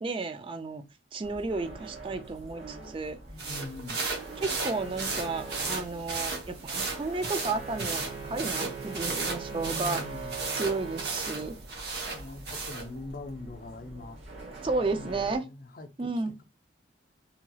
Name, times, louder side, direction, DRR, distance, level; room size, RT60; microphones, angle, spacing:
voice 1, 0.0-0.8 1.1-3.2 4.4-10.0 10.5-11.6 14.6-15.4 16.0-16.3, right 3 dB, 25° right, 0.3 m, -32 dB
sound 1, 1.2-15.4, right 3 dB, 80° right, 0.9 m, -43 dB
voice 2, 3.3-4.0 9.5-10.4 12.1-14.2 14.9-16.1, left 2 dB, 45° left, 0.5 m, -42 dB
sound 2, 3.4-12.9, right 3 dB, 55° right, 0.9 m, -35 dB
2.8 x 2.7 x 2.3 m
head